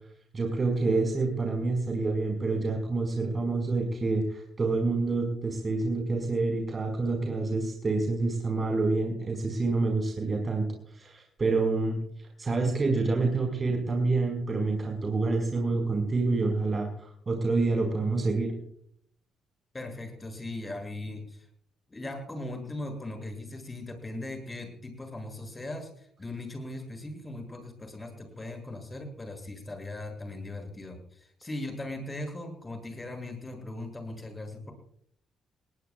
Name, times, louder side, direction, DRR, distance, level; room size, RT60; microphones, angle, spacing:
voice 1, 0.3-10.7 10.9-12.0 12.4-18.5, right 3 dB, 35° right, 2 dB, 5.1 m, -27 dB
voice 2, 19.7-21.5 21.9-34.7, left 2 dB, 20° left, 4 dB, 7.0 m, -39 dB
21.0 x 19.0 x 2.4 m, 0.64 s
cardioid pair, 90°, 0 cm